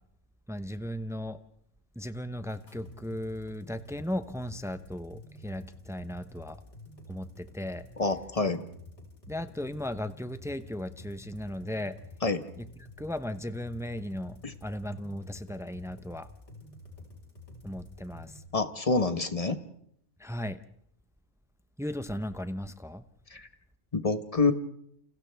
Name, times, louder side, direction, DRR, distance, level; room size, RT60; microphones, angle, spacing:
voice 1, 0.5-1.4 2.0-6.6 7.1-7.8 9.3-12.0 12.6-12.7 13.0-16.3 17.6-18.3 20.2-20.6 21.8-23.0, left 1 dB, 5° right, 10 dB, 0.4 m, -36 dB
sound 1, 2.5-18.5, left 2 dB, 50° left, 5.0 m, -49 dB
voice 2, 8.0-8.6 12.2-12.4 14.4-14.5 18.5-19.6 23.3-23.5 23.9-24.5, left 3 dB, 25° left, 9 dB, 1.1 m, -27 dB
29.0 x 29.0 x 3.4 m, 0.71 s
omnidirectional pair, 1.5 m